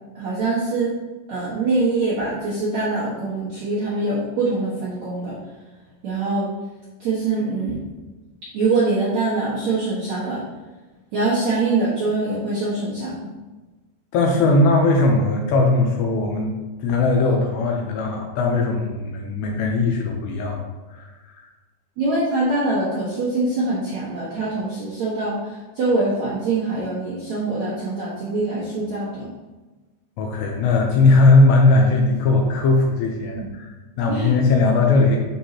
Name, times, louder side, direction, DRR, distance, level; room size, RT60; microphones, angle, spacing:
voice 1, 0.1-0.9 1.3-5.4 6.0-6.5 7.0-7.8 8.5-10.4 11.1-13.3 22.0-29.3 33.3-33.6 34.1-34.3, right 3 dB, 75° right, -9 dB, 1.6 m, -24 dB
voice 2, 14.1-16.5 16.8-20.6 20.9-21.5 30.2-35.2, left 3 dB, 80° left, 1 dB, 2.6 m, -18 dB
9.7 x 5.5 x 2.9 m, 1.2 s
omnidirectional pair, 5.8 m